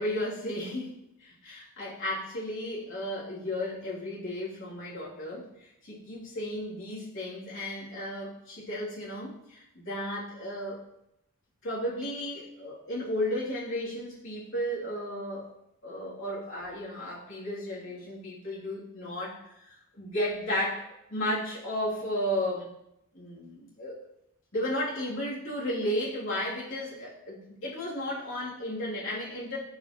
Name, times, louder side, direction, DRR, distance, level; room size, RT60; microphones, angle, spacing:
voice 1, 0.0-10.8 11.6-15.5 15.8-22.7 23.1-24.0 24.5-29.6, left 1 dB, 65° left, -7 dB, 2.9 m, -34 dB
11.5 x 4.7 x 3.0 m, 0.83 s
head